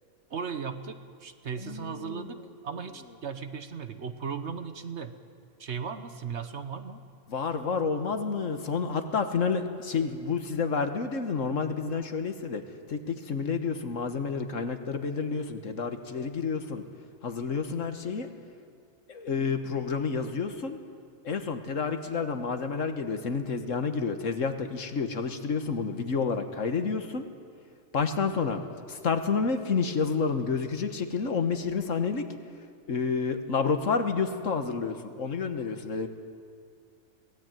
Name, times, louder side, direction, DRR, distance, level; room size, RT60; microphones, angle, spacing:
voice 1, 0.3-2.4 2.6-5.1 5.6-7.0, right 6 dB, 55° right, 9 dB, 1.2 m, -36 dB
voice 2, 1.6-2.3 7.3-12.6 12.9-16.8 17.2-18.3 19.1-20.8 21.2-27.2 27.9-28.6 28.9-32.2 32.9-36.1, left 5 dB, 65° left, 8 dB, 1.7 m, -29 dB
22.5 x 18.0 x 9.1 m, 2.3 s
omnidirectional pair, 1.5 m